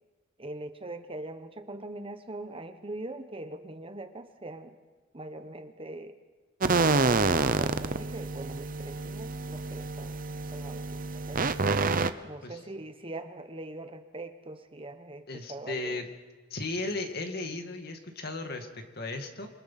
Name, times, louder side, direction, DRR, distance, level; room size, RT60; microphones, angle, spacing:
voice 1, 0.4-4.8 5.1-6.2 6.8-10.2 10.5-11.4 12.2-16.0, right 2 dB, 30° right, 8 dB, 1.1 m, -42 dB
sound 1, 6.6-12.1, right 3 dB, 45° right, 0.8 m, -28 dB
voice 2, 15.3-16.1 16.5-19.5, left 2 dB, 55° left, 5 dB, 2.3 m, -35 dB
27.0 x 22.5 x 5.9 m, 1.3 s
head